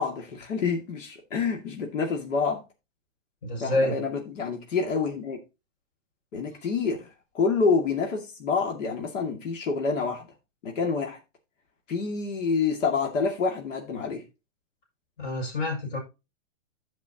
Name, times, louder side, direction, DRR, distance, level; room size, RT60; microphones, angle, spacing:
voice 1, 0.0-2.6 3.6-5.4 6.3-7.1 7.3-10.3 10.6-11.2 11.9-14.2, left 5 dB, 75° left, 2.3 m, -27 dB
voice 2, 3.4-4.0 15.2-16.0, left 1 dB, 45° left, 5.8 m, -27 dB
15.5 x 5.2 x 2.9 m
hypercardioid pair, 140°, 38 cm